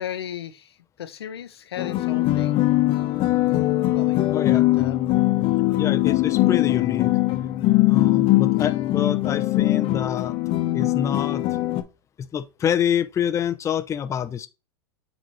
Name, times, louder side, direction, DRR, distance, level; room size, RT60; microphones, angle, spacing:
voice 1, 0.0-2.6 3.9-4.2 4.5-5.0, left 9 dB, 85° left, 0.9 m, -35 dB
sound 1, 1.8-11.8, left 17 dB, 45° left, 1.1 m, -21 dB
voice 2, 4.3-4.7 5.8-7.1 7.9-10.3 10.7-11.4 12.2-14.5, left 8 dB, 25° left, 0.7 m, -26 dB
7.8 x 4.1 x 3.1 m
hypercardioid pair, 105°, 13 cm